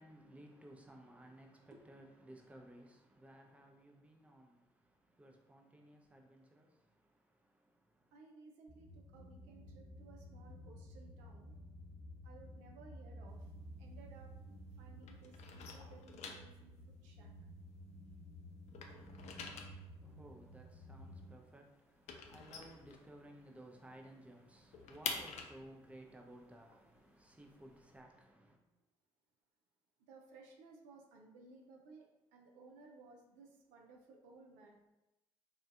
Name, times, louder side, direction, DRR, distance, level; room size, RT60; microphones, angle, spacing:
voice 1, 0.0-8.2 20.0-28.6, right 1 dB, 10° right, 0.6 m, -58 dB
voice 2, 8.1-11.6 12.2-13.5 13.8-14.3 14.7-17.3 30.0-34.8, right 3 dB, 70° right, 0.4 m, -59 dB
sound 1, 8.7-21.3, equal, 45° right, 0.9 m, -53 dB
sound 2, 13.3-14.8 15.0-18.2 18.5-23.6 23.9-24.0 24.3-28.0, left 5 dB, 55° left, 0.4 m, -48 dB
3.4 x 2.5 x 2.3 m
hypercardioid pair, 45°, 13 cm